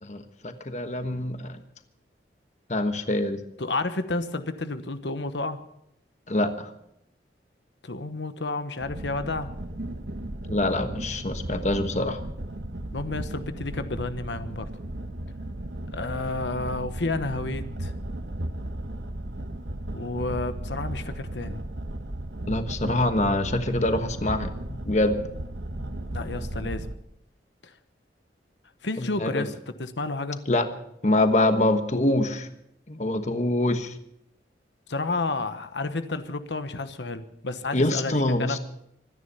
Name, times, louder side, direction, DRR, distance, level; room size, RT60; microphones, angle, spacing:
voice 1, 0.0-1.6 2.7-3.4 6.3-6.7 10.5-12.2 22.5-24.5 24.9-25.2 29.0-29.5 30.5-30.7 31.0-32.5 32.9-33.9 37.7-38.6, left 1 dB, 40° left, 8 dB, 1.2 m, -25 dB
voice 2, 3.6-5.6 7.8-9.5 12.9-14.7 15.9-17.9 19.9-21.6 26.1-26.9 28.8-30.4 34.9-38.6, left 3 dB, 90° left, 10 dB, 1.1 m, -31 dB
sound 1, 8.8-26.9, right 1 dB, 75° right, 1.3 m, -35 dB
25.5 x 10.0 x 5.6 m, 0.77 s
head